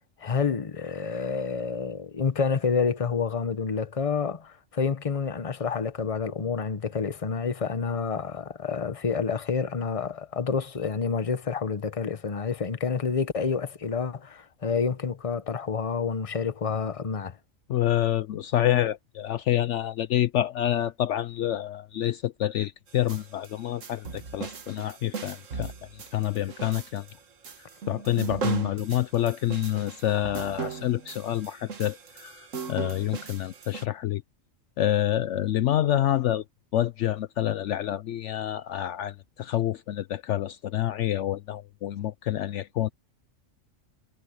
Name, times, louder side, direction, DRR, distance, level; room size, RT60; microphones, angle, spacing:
voice 1, 0.2-17.4, left 5 dB, 30° left, 1.0 m, -28 dB
voice 2, 17.7-27.1 27.9-34.2 34.8-36.4 36.7-42.9, left 12 dB, 70° left, 0.9 m, -27 dB
sound 1, 22.9-33.9, right 5 dB, 70° right, 1.8 m, -37 dB
omnidirectional pair, 1.4 m